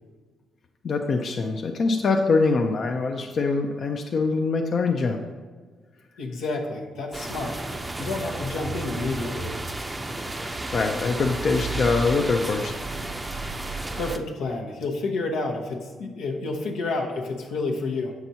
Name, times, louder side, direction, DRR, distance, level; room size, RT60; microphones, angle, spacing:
voice 1, 0.8-5.2 10.4-12.7, left 4 dB, 50° left, 3 dB, 0.5 m, -24 dB
voice 2, 6.2-9.6 13.9-18.1, left 3 dB, 85° left, 0 dB, 0.9 m, -30 dB
sound 1, 7.1-14.2, right 2 dB, 15° right, 0.5 m, -32 dB
7.8 x 5.9 x 2.8 m, 1.5 s
cardioid pair, 90°, 0 cm